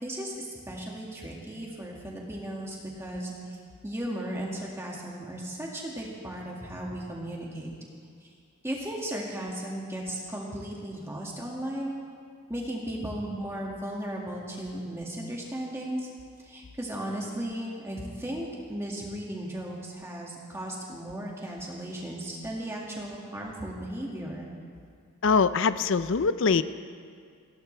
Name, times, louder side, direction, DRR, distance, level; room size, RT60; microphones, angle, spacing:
voice 1, 0.0-7.7 8.2-8.3 8.6-12.0 12.5-16.1 16.4-24.5, right 1 dB, 10° right, -2 dB, 2.1 m, -36 dB
voice 2, 25.2-26.6, left 5 dB, 55° left, 14 dB, 0.5 m, -23 dB
29.5 x 11.5 x 3.4 m, 2.2 s
head